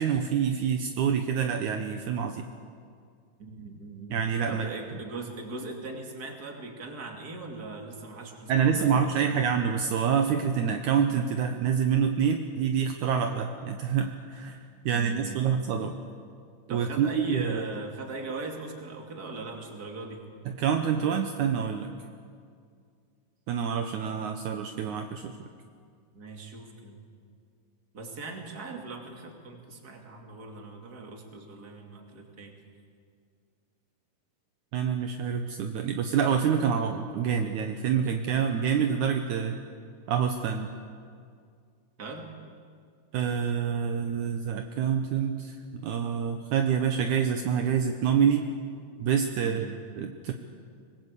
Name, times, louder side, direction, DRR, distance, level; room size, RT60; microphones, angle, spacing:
voice 1, 0.0-2.4 4.1-4.7 8.5-14.6 14.8-16.0 16.7-17.7 20.5-21.9 23.5-25.3 34.7-39.6 40.1-40.7 43.1-45.6 45.8-48.5 49.0-49.7 50.0-50.3, right 7 dB, 75° right, 6 dB, 1.8 m, -27 dB
voice 2, 3.4-9.4 14.9-15.6 16.7-20.2 26.1-27.0 27.9-32.5 42.0-42.3 49.4-49.8, right 3 dB, 25° right, 2 dB, 2.5 m, -40 dB
24.5 x 20.5 x 8.3 m, 2.2 s
omnidirectional pair, 4.8 m